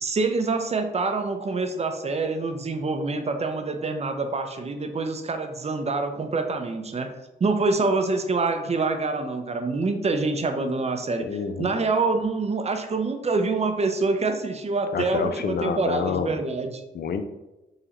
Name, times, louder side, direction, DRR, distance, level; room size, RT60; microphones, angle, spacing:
voice 1, 0.0-7.1 7.4-11.3 11.6-16.8, right 3 dB, 35° right, 6 dB, 0.5 m, -26 dB
voice 2, 11.2-11.7 14.9-16.4 16.9-17.2, left 6 dB, 60° left, 8 dB, 0.4 m, -28 dB
3.7 x 3.1 x 2.9 m, 1.0 s
cardioid pair, 70°, 18 cm